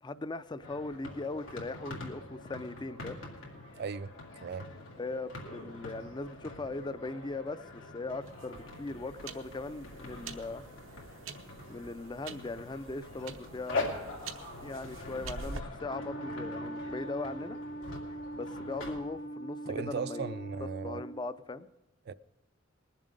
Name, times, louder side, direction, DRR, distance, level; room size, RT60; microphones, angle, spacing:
voice 1, 0.0-3.2 5.0-10.6 11.7-13.9 14.6-17.6 18.3-20.3 20.8-21.7, left 3 dB, 25° left, 0.4 m, -39 dB
sound 1, 0.6-19.0, left 2 dB, 90° left, 2.5 m, -44 dB
voice 2, 3.8-4.1 4.4-4.7 19.7-21.0 22.1-22.2, right 5 dB, 55° right, 0.4 m, -37 dB
sound 2, 8.2-15.6, right 4 dB, 85° right, 0.9 m, -47 dB
Wind instrument woodwind instrument, 15.8-21.2, right 1 dB, 40° left, 1.0 m, -41 dB
20.5 x 7.4 x 5.2 m
head